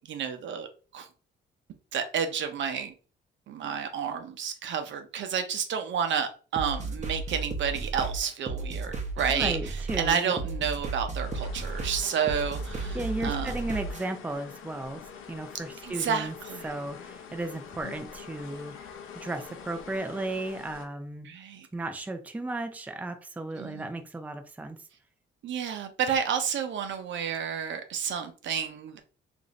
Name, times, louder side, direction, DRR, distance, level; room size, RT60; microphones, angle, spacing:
voice 1, 0.1-0.7 0.9-1.1 1.9-2.9 3.5-9.6 10.0-13.0 13.2-13.5 15.8-16.6 21.3-21.7 23.6-23.9 25.4-29.0, right 7 dB, 65° right, 7 dB, 0.7 m, -30 dB
sound 1, 6.6-14.0, right 3 dB, 35° right, 0.9 m, -34 dB
voice 2, 9.3-10.3 12.9-15.0 15.3-16.3 16.6-18.9 19.2-21.3 21.7-24.8, right 2 dB, 5° right, 7 dB, 0.5 m, -35 dB
sound 2, 11.2-20.9, left 7 dB, 80° left, 0.7 m, -45 dB
3.0 x 2.6 x 3.9 m, 0.36 s
cardioid pair, 110°, 20 cm